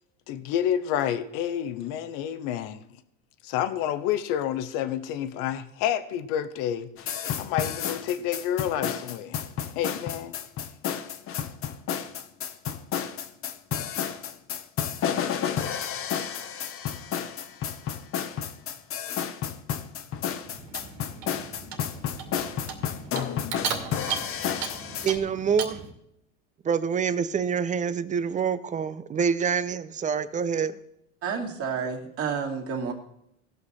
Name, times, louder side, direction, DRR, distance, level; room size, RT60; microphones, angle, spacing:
voice 1, 0.3-2.8 3.4-9.4 9.7-10.4, left 10 dB, 60° left, 1.0 m, -29 dB
sound 1, 7.0-25.2, left 8 dB, 35° left, 1.0 m, -31 dB
Clock, 20.4-25.9, right 7 dB, 75° right, 2.3 m, -36 dB
voice 2, 25.0-25.8 26.6-30.8, right 6 dB, 20° right, 0.6 m, -26 dB
voice 3, 31.2-32.9, right 6 dB, 40° right, 2.4 m, -30 dB
17.5 x 6.1 x 4.3 m
supercardioid pair, 105°, 36 cm